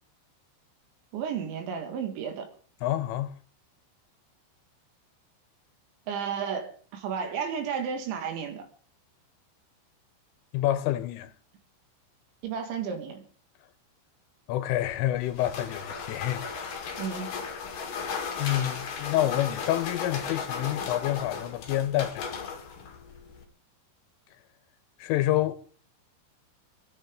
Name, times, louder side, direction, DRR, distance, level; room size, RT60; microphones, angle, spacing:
voice 1, 1.1-2.5 6.1-8.7 12.4-13.2 17.0-17.4, right 7 dB, 70° right, 4.1 m, -33 dB
voice 2, 2.8-3.3 10.5-11.3 14.5-16.4 18.4-22.3 25.0-25.6, left 13 dB, 90° left, 3.5 m, -28 dB
sound 1, 14.7-23.4, left 6 dB, 50° left, 3.3 m, -36 dB
26.0 x 10.0 x 3.9 m
omnidirectional pair, 5.6 m